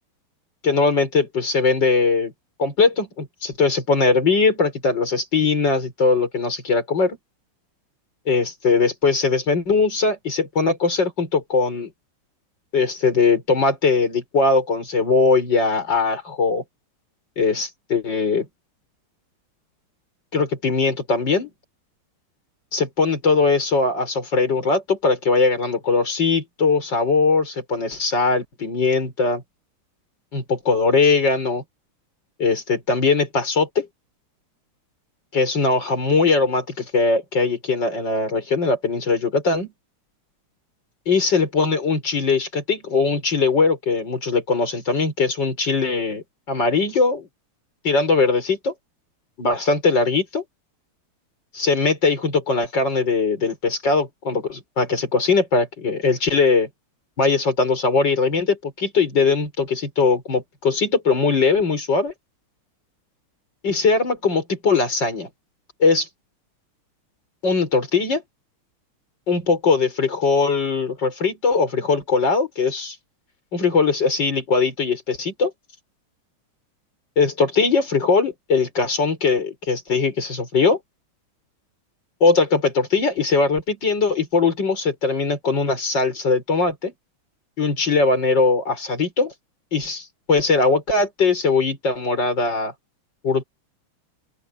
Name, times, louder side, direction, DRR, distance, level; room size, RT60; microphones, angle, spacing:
voice 1, 0.6-2.3 2.6-7.2 8.3-11.9 12.7-16.6 17.4-18.5 20.3-21.5 22.7-29.4 30.3-31.6 32.4-33.9 35.3-39.7 41.1-47.3 47.8-48.7 49.4-50.4 51.5-56.7 57.2-62.1 63.6-65.3 65.8-66.1 67.4-68.2 69.3-73.0 73.5-75.5 77.2-80.8 82.2-86.9 87.6-89.3 89.7-92.7 93.2-93.4, left 4 dB, 50° left, 6.2 m, -20 dB
open air
omnidirectional pair, 2.4 m